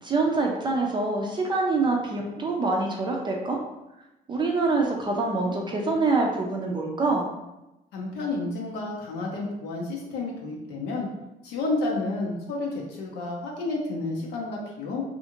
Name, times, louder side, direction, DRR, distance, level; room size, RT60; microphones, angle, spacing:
voice 1, 0.0-3.6 4.3-7.3, right 3 dB, 25° right, 0 dB, 0.4 m, -25 dB
voice 2, 7.9-11.1 11.4-15.0, left 2 dB, 80° left, -2 dB, 0.6 m, -30 dB
2.5 x 2.4 x 2.8 m, 0.94 s
cardioid pair, 110°, 17 cm